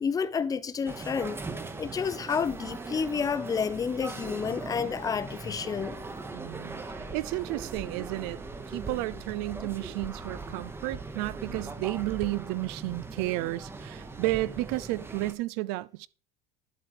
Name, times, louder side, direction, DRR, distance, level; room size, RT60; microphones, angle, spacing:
voice 1, 0.0-1.4 1.8-6.0, left 6 dB, 20° left, 0.7 m, -30 dB
sound 1, 0.8-15.3, right 3 dB, 15° right, 1.0 m, -40 dB
voice 2, 6.3-16.1, right 18 dB, 70° right, 0.5 m, -32 dB
11.5 x 4.5 x 4.8 m
supercardioid pair, 130°, 17 cm